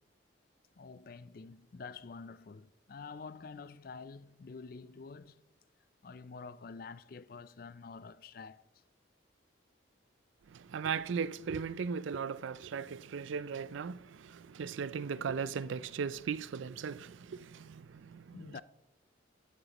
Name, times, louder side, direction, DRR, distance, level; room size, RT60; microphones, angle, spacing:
voice 1, 0.8-5.4 6.0-8.6 18.3-18.6, left 4 dB, 50° left, 0.4 m, -48 dB
voice 2, 10.5-18.5, right 6 dB, 80° right, 0.4 m, -37 dB
13.0 x 12.0 x 3.0 m
head